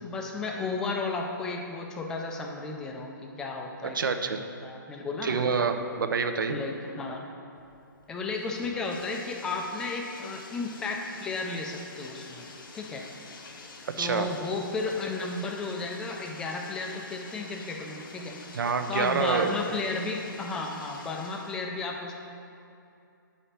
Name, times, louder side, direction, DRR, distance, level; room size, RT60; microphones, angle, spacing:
voice 1, 0.0-5.4 6.5-7.3 8.1-12.5 12.7-13.1 14.0-18.4 18.9-22.2, left 3 dB, 5° left, 1 dB, 0.3 m, -33 dB
voice 2, 3.9-4.4 5.2-6.6 14.0-14.3 18.5-19.5, right 5 dB, 75° right, 8 dB, 0.6 m, -27 dB
Bathtub (filling or washing), 7.6-21.6, left 3 dB, 85° left, 1.0 m, -47 dB
8.6 x 5.1 x 4.3 m, 2.6 s
hypercardioid pair, 165°, 11 cm